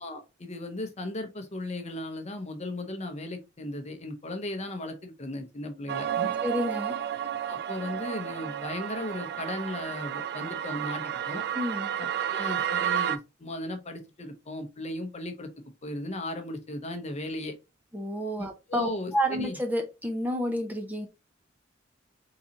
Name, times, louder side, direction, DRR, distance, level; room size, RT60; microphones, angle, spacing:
voice 1, 0.0-6.3 7.5-11.4 12.0-15.5 15.8-17.5 18.4-19.1 19.4-19.6, left 1 dB, 35° left, 0.8 m, -36 dB
sound 1, 5.9-13.2, right 10 dB, 55° right, 0.3 m, -31 dB
voice 2, 6.4-7.0 11.5-11.9 17.9-21.1, equal, 10° right, 0.6 m, -30 dB
3.9 x 3.8 x 2.8 m
head